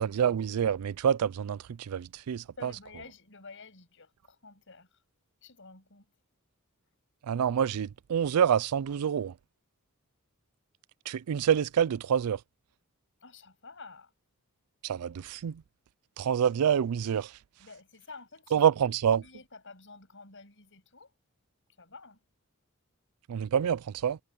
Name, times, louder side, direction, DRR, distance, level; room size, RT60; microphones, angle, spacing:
voice 1, 0.0-2.7 7.2-9.4 11.1-12.4 14.8-15.6 16.2-17.4 18.5-19.2 23.3-24.2, right 8 dB, 90° right, 0.4 m, -27 dB
voice 2, 2.6-5.0 5.4-6.1 13.2-14.1 17.6-18.6 19.2-21.1 21.8-22.2, left 4 dB, 60° left, 7.1 m, -50 dB
head